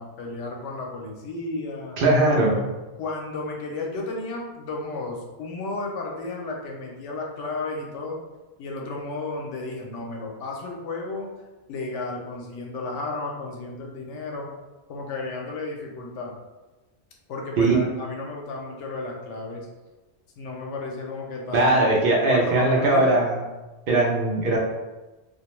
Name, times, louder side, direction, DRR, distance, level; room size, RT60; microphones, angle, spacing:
voice 1, 0.0-2.0 2.5-2.6 2.9-8.2 8.6-11.3 11.7-14.5 14.9-16.3 17.3-19.7 20.4-22.0 22.3-23.2, left 3 dB, 85° left, 0 dB, 0.9 m, -33 dB
voice 2, 2.0-2.6 17.6-17.7 21.5-23.4 23.9-24.6, right 2 dB, 60° right, -3 dB, 0.6 m, -20 dB
2.4 x 2.1 x 2.9 m, 1.1 s
omnidirectional pair, 1.2 m